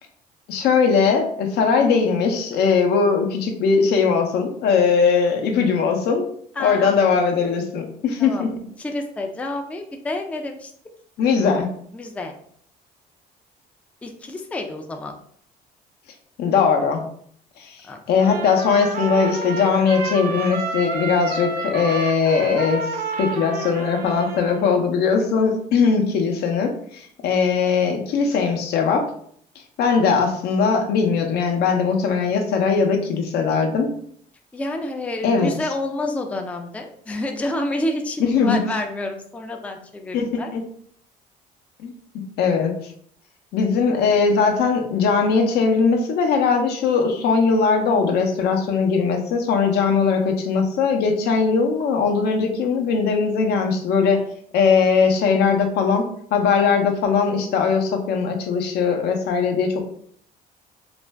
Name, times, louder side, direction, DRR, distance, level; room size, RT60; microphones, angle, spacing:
voice 1, 0.5-6.3 6.6-8.5 11.2-11.7 16.4-17.0 17.6-17.7 18.1-22.9 23.2-29.1 29.8-33.9 35.2-35.5 38.2-38.6 40.1-40.6 41.8-41.9 42.4-42.7 43.5-54.2 54.5-56.1 56.3-59.8, left 5 dB, 75° left, 4 dB, 0.6 m, -20 dB
voice 2, 6.6-7.0 8.2-8.5 8.8-10.7 11.9-12.3 14.0-15.1 17.8-18.0 34.5-40.5, left 1 dB, 10° left, 4 dB, 0.3 m, -29 dB
Trumpet, 18.2-24.8, right 4 dB, 65° right, 0.6 m, -30 dB
2.5 x 2.2 x 3.2 m, 0.62 s
cardioid pair, 110°, 17 cm